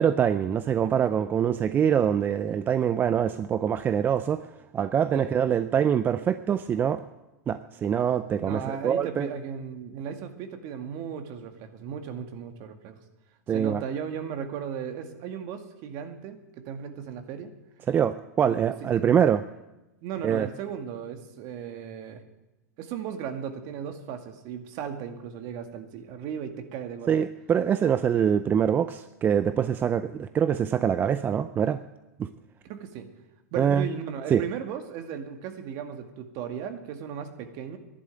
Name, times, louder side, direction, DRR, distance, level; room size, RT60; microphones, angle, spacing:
voice 1, 0.0-7.0 7.5-9.3 13.5-13.8 17.9-19.4 20.2-20.5 27.1-31.8 32.2-32.3 33.6-33.9 34.3-34.4, right 8 dB, 20° right, 13 dB, 0.5 m, -24 dB
voice 2, 8.3-13.0 13.5-17.5 18.4-19.1 20.0-22.2 22.8-27.1 32.6-33.1 33.5-37.8, right 7 dB, 45° right, 7 dB, 2.0 m, -36 dB
12.5 x 11.0 x 8.9 m, 1.0 s
hypercardioid pair, 130°, 9 cm